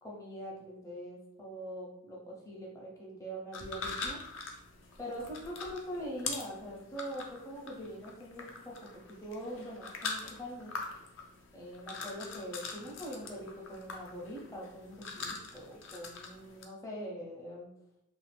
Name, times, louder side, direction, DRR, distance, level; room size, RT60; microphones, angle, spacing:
voice 1, 0.0-4.2 5.0-10.7 11.5-17.7, equal, 15° left, -4 dB, 0.6 m, -43 dB
sound 1, 3.5-16.6, left 4 dB, 60° left, 0.5 m, -43 dB
2.6 x 2.4 x 3.3 m, 0.82 s
head